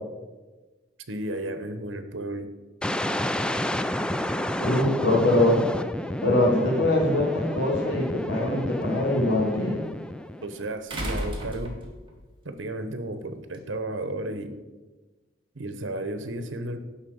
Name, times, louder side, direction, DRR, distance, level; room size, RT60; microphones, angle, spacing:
voice 1, 1.1-2.5 10.4-11.8 12.4-14.5 15.5-16.8, right 1 dB, 85° right, 10 dB, 0.9 m, -33 dB
sound 1, 2.8-10.7, left 1 dB, 5° left, 0.3 m, -30 dB
voice 2, 4.6-5.6 6.2-9.8, left 1 dB, 85° left, -7 dB, 2.2 m, -23 dB
sound 2, 7.6-7.7 10.9-12.2 13.5-13.6, equal, 25° right, 1.9 m, -33 dB
10.5 x 4.1 x 7.8 m, 1.2 s
head